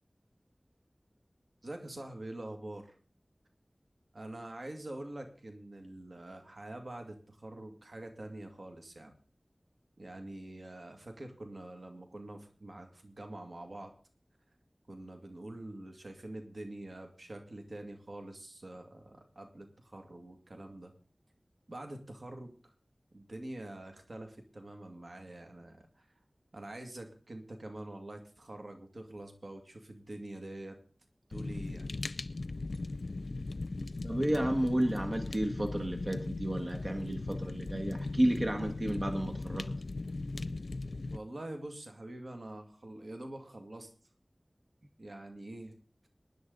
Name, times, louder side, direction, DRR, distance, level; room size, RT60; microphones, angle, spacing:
voice 1, 1.6-2.9 4.1-9.1 10.0-13.9 14.9-20.9 21.7-22.5 23.1-26.0 26.5-30.8 31.3-31.9 41.1-43.9 45.0-45.7, right 1 dB, 75° right, 4 dB, 2.2 m, -45 dB
Fire, 31.3-41.2, left 2 dB, 85° left, 0.5 m, -38 dB
voice 2, 34.0-39.7, right 1 dB, 45° right, 3 dB, 1.6 m, -32 dB
19.5 x 10.5 x 4.0 m, 0.40 s
wide cardioid pair, 55°, 0 cm